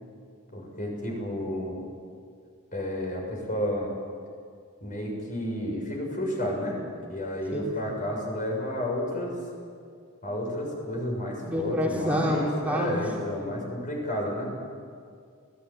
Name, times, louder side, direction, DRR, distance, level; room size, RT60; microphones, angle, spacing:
voice 1, 0.5-1.8 2.7-3.9 4.8-9.4 10.2-14.5, left 1 dB, 40° left, 0 dB, 6.8 m, -31 dB
voice 2, 7.5-8.0 11.4-13.1, equal, 5° right, -3 dB, 3.3 m, -28 dB
28.0 x 18.5 x 9.2 m, 2.2 s
head